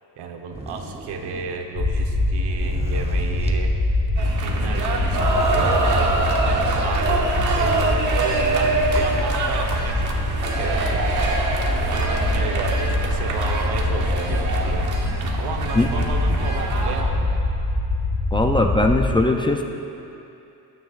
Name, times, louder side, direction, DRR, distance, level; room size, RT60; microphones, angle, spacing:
voice 1, 0.2-3.8 4.4-6.1 6.8-10.1 10.5-11.1 11.8-14.9 15.3-17.5, right 5 dB, 85° right, 3 dB, 1.2 m, -32 dB
sound 1, 0.5-1.7 2.4-3.7 4.6-4.7 4.8-6.9, right 2 dB, 15° right, 0.9 m, -33 dB
sound 2, 1.8-19.1, left 2 dB, 60° left, 2.9 m, -24 dB
sound 3, 4.2-17.0, right 3 dB, 50° right, 1.2 m, -25 dB
voice 2, 18.3-19.6, left 2 dB, 15° left, 3 dB, 0.4 m, -19 dB
21.0 x 9.4 x 2.5 m, 2.8 s
cardioid pair, 155°, 39 cm